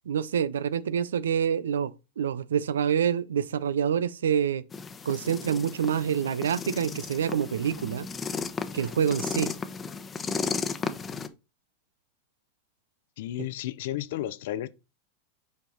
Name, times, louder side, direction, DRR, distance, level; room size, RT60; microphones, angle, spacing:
voice 1, 0.1-4.6 5.1-8.1 8.7-9.5, right 8 dB, 85° right, 0.5 m, -27 dB
sound 1, 4.7-11.3, left 5 dB, 20° left, 0.8 m, -34 dB
voice 2, 13.2-14.7, left 13 dB, 70° left, 0.6 m, -33 dB
7.3 x 4.6 x 3.9 m
hypercardioid pair, 105°, 0 cm